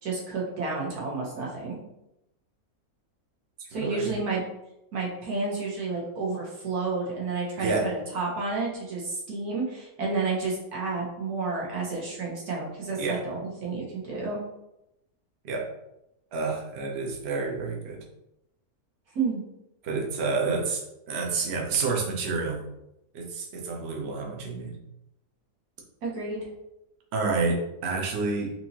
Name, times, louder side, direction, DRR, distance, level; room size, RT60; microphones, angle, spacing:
voice 1, 0.0-1.8 3.7-4.4 4.9-14.4 19.1-19.4 26.0-26.5, right 4 dB, 85° right, -4 dB, 1.7 m, -30 dB
voice 2, 3.6-4.1 7.6-7.9 13.0-13.2 15.4-15.7 16.3-18.0 19.8-22.6 23.1-24.8 27.1-28.5, right 4 dB, 55° right, 0 dB, 0.9 m, -29 dB
4.4 x 2.7 x 2.8 m, 0.86 s
omnidirectional pair, 1.6 m